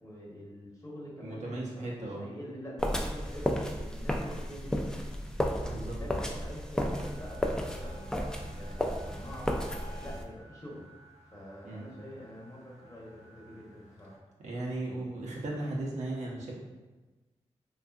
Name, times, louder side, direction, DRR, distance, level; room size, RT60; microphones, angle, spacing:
voice 1, 0.0-4.9 5.4-8.1 8.5-10.9 11.3-14.2, equal, 25° left, -4 dB, 0.9 m, -46 dB
voice 2, 1.2-2.2 5.6-6.0 11.6-11.9 14.4-16.5, right 2 dB, 80° right, -4 dB, 0.6 m, -36 dB
sound 1, 2.8-10.2, equal, 5° left, 0.3 m, -33 dB
sound 2, 6.9-14.2, right 1 dB, 85° left, 0.6 m, -52 dB
2.6 x 2.3 x 2.3 m, 1.2 s
cardioid pair, 45°, 12 cm